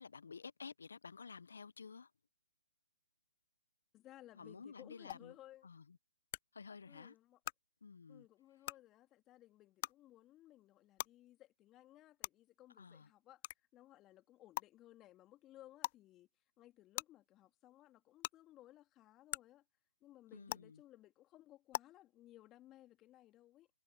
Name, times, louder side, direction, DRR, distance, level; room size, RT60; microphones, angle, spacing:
voice 1, 0.0-2.1 4.3-5.4 5.6-6.0 6.5-7.2 7.8-8.3 12.8-13.1 20.3-20.8, left 5 dB, 70° left, 0.8 m, -52 dB
voice 2, 3.9-5.7 6.9-7.4 8.1-13.4 13.7-16.3 16.6-19.6 20.0-23.7, left 14 dB, 20° left, 2.5 m, -61 dB
sound 1, 5.1-5.2 6.3-6.4 7.4-7.5 8.6-8.7 9.8-9.9 11.0-11.1 12.2-12.3 13.4-13.6 14.6-14.7 15.8-16.0 17.0-17.1 18.2-18.3 19.3-19.4 20.5-20.6 21.7-21.8, left 17 dB, 35° left, 0.3 m, -40 dB
figure-of-eight pair, 135°, 0 cm